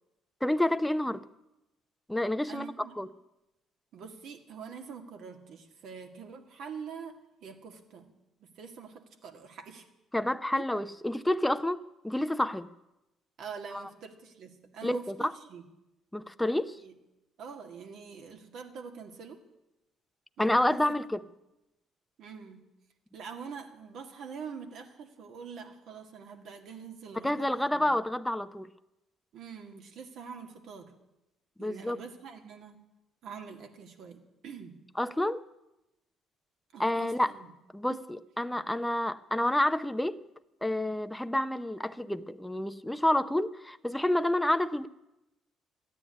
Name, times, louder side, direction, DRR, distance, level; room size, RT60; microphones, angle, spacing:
voice 1, 0.4-1.2 2.1-3.1 10.1-12.7 14.8-15.3 16.1-16.8 20.4-21.2 27.2-28.7 31.6-32.0 35.0-35.4 36.8-37.3 37.7-40.2 40.6-44.9, left 1 dB, 5° left, 0.6 m, -29 dB
voice 2, 2.5-2.9 3.9-8.1 8.4-9.9 10.6-10.7 13.4-15.6 16.8-16.9 17.4-19.4 20.4-20.9 22.2-22.7 23.1-27.9 29.3-30.9 31.6-32.8 33.2-34.8 36.7-37.5 37.9-38.0, right 6 dB, 70° right, 2.0 m, -45 dB
13.5 x 9.8 x 9.8 m
cardioid pair, 85°, 0 cm